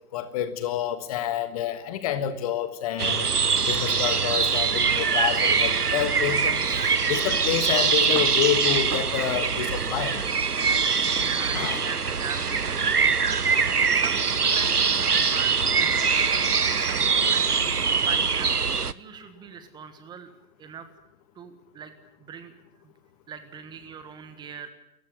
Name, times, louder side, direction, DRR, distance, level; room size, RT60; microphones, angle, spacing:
voice 1, 0.1-3.3 3.7-6.6 7.1-10.2 11.5-11.9, left 10 dB, 25° left, 11 dB, 1.4 m, -28 dB
sound 1, 3.0-18.9, right 5 dB, 90° right, 1.1 m, -23 dB
voice 2, 10.8-12.8 13.9-20.3 20.6-20.9 21.3-21.9 22.2-22.5 22.8-22.9 23.3-24.7, right 7 dB, 10° right, 11 dB, 1.5 m, -41 dB
29.5 x 15.0 x 9.8 m, 0.83 s
figure-of-eight pair, 135°, 45 cm